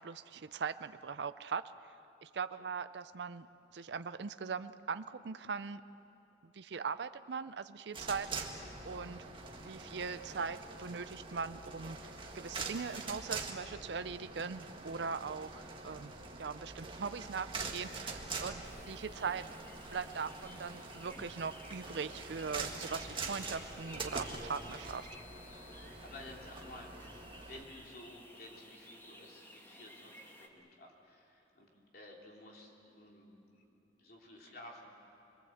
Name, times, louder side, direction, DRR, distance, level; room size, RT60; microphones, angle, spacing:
voice 1, 0.0-1.6 2.2-3.5 3.7-5.8 6.4-8.3 8.8-9.2 9.6-16.1 16.4-19.5 19.9-25.1, right 5 dB, 70° right, 12 dB, 0.5 m, -40 dB
sound 1, 7.9-27.6, right 3 dB, 30° right, 1.8 m, -44 dB
sound 2, 18.6-30.5, equal, 15° left, 2.0 m, -55 dB
voice 2, 25.6-34.9, left 1 dB, 60° left, -1 dB, 3.2 m, -54 dB
26.0 x 21.5 x 7.9 m, 2.9 s
head